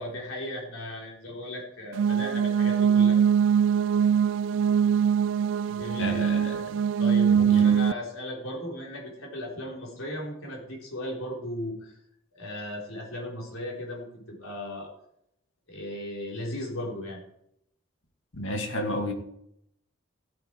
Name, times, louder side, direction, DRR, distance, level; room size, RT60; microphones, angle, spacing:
voice 1, 0.0-3.2 5.7-6.3 7.0-12.0 12.3-14.9 15.7-17.2, left 1 dB, 90° left, -2 dB, 4.0 m, -36 dB
sound 1, 1.9-7.9, right 7 dB, 65° right, 0.3 m, -22 dB
voice 2, 6.0-6.8 7.3-7.7 18.3-19.1, left 1 dB, 70° left, 3 dB, 2.2 m, -32 dB
14.5 x 8.1 x 4.5 m, 0.75 s
head